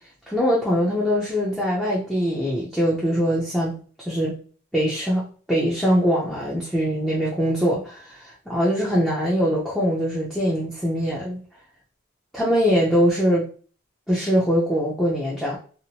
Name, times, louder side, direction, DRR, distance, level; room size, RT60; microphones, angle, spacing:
voice 1, 0.3-3.8 4.1-4.3 4.7-11.4 12.3-13.5 14.1-15.6, equal, 5° left, -7 dB, 0.5 m, -22 dB
2.8 x 2.0 x 2.8 m, 0.40 s
head